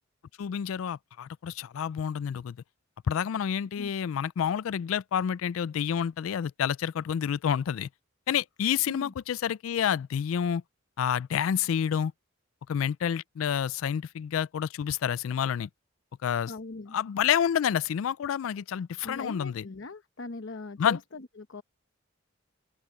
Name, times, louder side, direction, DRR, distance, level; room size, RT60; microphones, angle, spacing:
voice 1, 0.4-2.6 3.1-7.9 8.3-10.6 11.0-12.1 12.7-15.7 16.2-16.5 16.9-19.6 20.8-21.0, left 8 dB, 80° left, 0.3 m, -29 dB
voice 2, 16.5-17.0 19.0-21.6, left 3 dB, 65° left, 0.9 m, -40 dB
open air
head